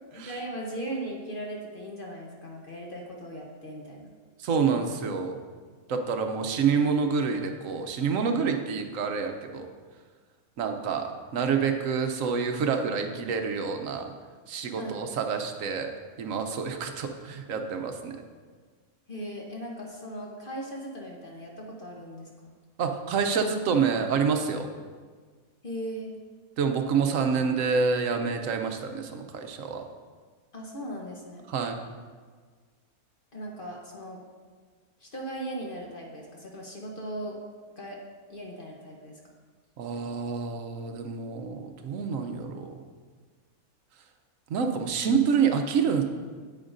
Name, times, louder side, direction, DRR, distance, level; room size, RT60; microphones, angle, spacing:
voice 1, 0.1-4.1 14.8-15.0 19.1-22.5 25.6-26.1 30.5-31.5 33.3-34.2 35.0-37.4 37.8-38.0 38.3-39.2, right 1 dB, 40° left, -1 dB, 1.0 m, -38 dB
voice 2, 4.4-5.4 5.9-9.7 10.6-14.1 14.5-15.9 16.2-18.2 22.8-24.7 26.6-29.8 31.5-31.8 39.8-42.8 44.5-46.0, right 5 dB, 70° right, 5 dB, 1.0 m, -27 dB
8.8 x 8.7 x 2.6 m, 1.5 s
omnidirectional pair, 1.5 m